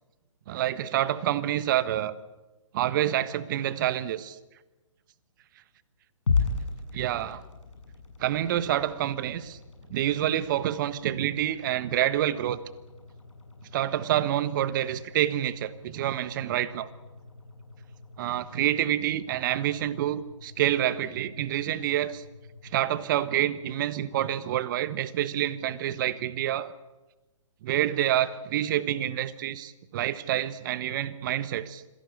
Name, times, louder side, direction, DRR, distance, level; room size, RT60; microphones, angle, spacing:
voice 1, 0.5-2.1 2.7-4.4 6.9-7.4 8.2-9.6 9.9-12.6 13.7-16.9 18.2-22.2 22.7-26.7 27.6-31.8, right 12 dB, 40° right, 15 dB, 1.3 m, -27 dB
sound 1, 6.3-24.5, left 4 dB, 70° left, 7.4 m, -38 dB
26.0 x 17.0 x 8.3 m, 1.1 s
figure-of-eight pair, 130°, 17 cm